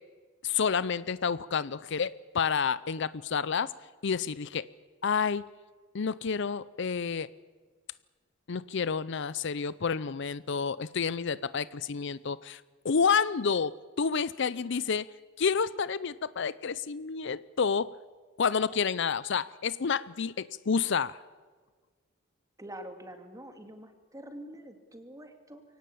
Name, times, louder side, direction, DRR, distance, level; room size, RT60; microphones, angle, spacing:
voice 1, 0.4-3.7 4.0-4.7 5.0-5.4 5.9-7.3 8.5-15.1 15.4-17.9 18.4-21.2, left 6 dB, 65° left, 18 dB, 0.6 m, -29 dB
voice 2, 22.6-25.6, right 1 dB, 15° right, 6 dB, 2.3 m, -45 dB
23.0 x 18.0 x 8.6 m, 1.4 s
head